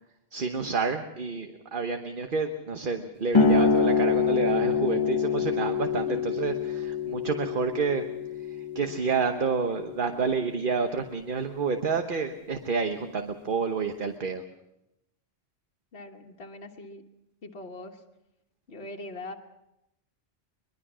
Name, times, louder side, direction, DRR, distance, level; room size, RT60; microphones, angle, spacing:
voice 1, 0.3-8.0 8.7-14.4, right 5 dB, 55° right, 6 dB, 1.2 m, -29 dB
sound 1, 3.3-10.5, left 5 dB, 25° left, 1.5 m, -26 dB
voice 2, 15.9-17.0 17.4-18.0 18.7-19.3, left 2 dB, 70° left, 2 dB, 1.7 m, -41 dB
23.0 x 22.0 x 6.1 m, 0.87 s
omnidirectional pair, 1.1 m